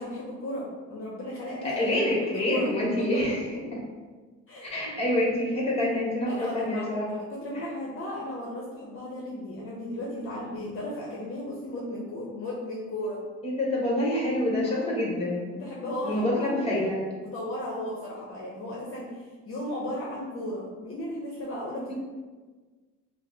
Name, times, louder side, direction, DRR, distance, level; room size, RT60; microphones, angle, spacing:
voice 1, 0.0-2.7 3.0-3.2 4.5-4.7 6.3-13.2 14.6-14.9 15.5-16.9 17.2-21.9, left 1 dB, 45° left, -4 dB, 0.7 m, -35 dB
voice 2, 1.6-3.8 4.6-7.1 7.5-7.7 13.4-15.6 16.0-17.0 21.9-22.0, left 1 dB, 20° left, -3 dB, 1.1 m, -27 dB
5.1 x 2.0 x 2.7 m, 1.4 s
cardioid pair, 115°, 30 cm